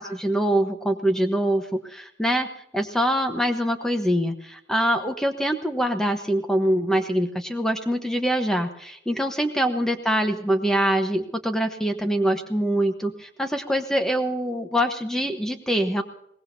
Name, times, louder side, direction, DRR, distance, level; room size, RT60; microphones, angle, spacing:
voice 1, 0.0-2.5 2.7-16.0, equal, 5° left, 6 dB, 1.1 m, -24 dB
23.0 x 19.0 x 2.7 m, 0.77 s
head